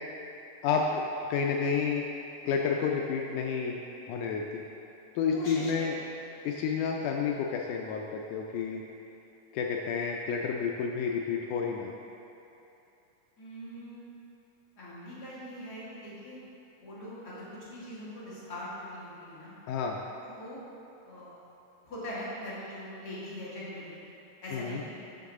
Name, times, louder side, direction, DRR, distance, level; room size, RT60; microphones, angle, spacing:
voice 1, 0.6-1.0 1.3-2.0 2.4-3.8 4.1-4.7 5.1-6.0 6.4-8.8 9.5-11.9 19.7-20.0 24.5-24.8, left 6 dB, 90° left, 0 dB, 1.7 m, -30 dB
voice 2, 5.3-6.2 13.4-14.0 14.8-16.4 16.8-19.5 20.2-20.6 21.0-21.4 21.8-24.0 24.4-25.1, left 1 dB, 35° left, -10 dB, 1.9 m, -42 dB
9.3 x 6.0 x 3.6 m, 2.9 s
omnidirectional pair, 4.1 m